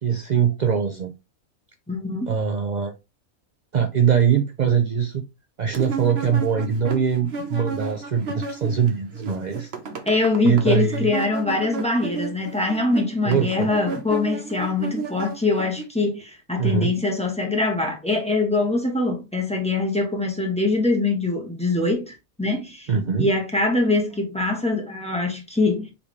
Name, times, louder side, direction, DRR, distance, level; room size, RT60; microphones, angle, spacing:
voice 1, 0.0-1.1 2.3-2.9 3.7-5.2 5.6-9.7 10.4-11.1 13.2-13.7 16.6-16.9 22.9-23.3, right 7 dB, 70° right, 0.4 m, -22 dB
voice 2, 1.9-2.3 10.1-22.9 23.2-25.9, left 2 dB, 5° left, 1.1 m, -23 dB
sound 1, 5.7-8.9 9.1-15.8, right 4 dB, 50° right, 1.0 m, -33 dB
4.8 x 3.5 x 3.1 m
omnidirectional pair, 1.5 m